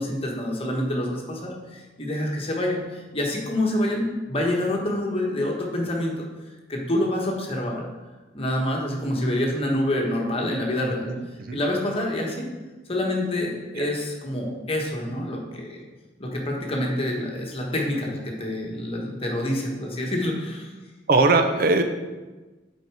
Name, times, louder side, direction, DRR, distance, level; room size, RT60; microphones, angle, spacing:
voice 1, 0.0-6.3 6.7-7.8 8.3-11.1 11.5-12.5 12.9-15.8 16.2-20.7, left 1 dB, 30° left, -1 dB, 1.3 m, -27 dB
voice 2, 10.8-11.6 13.8-13.9 21.1-21.8, right 3 dB, 55° right, 7 dB, 0.6 m, -21 dB
7.8 x 4.6 x 4.8 m, 1.2 s
head